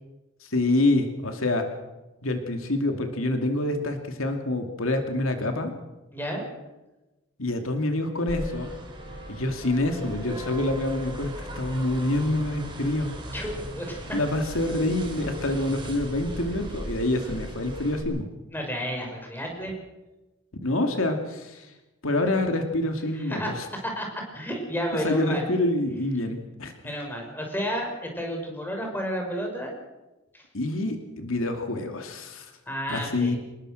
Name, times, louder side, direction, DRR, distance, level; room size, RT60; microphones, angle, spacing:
voice 1, 0.4-1.6 2.2-5.7 7.4-8.7 9.3-13.1 14.1-18.3 20.6-21.7 22.0-23.7 24.9-26.9 30.5-32.5 32.9-33.4, left 2 dB, 75° left, 5 dB, 2.6 m, -26 dB
voice 2, 6.1-6.4 13.3-14.2 18.5-19.7 23.1-23.5 24.0-24.1 24.3-25.5 26.8-29.7 30.3-30.4 32.7-33.4, equal, 10° left, 2 dB, 5.8 m, -31 dB
sound 1, 8.3-18.0, equal, 25° right, 5.6 m, -38 dB
26.5 x 20.0 x 6.5 m, 1.0 s
head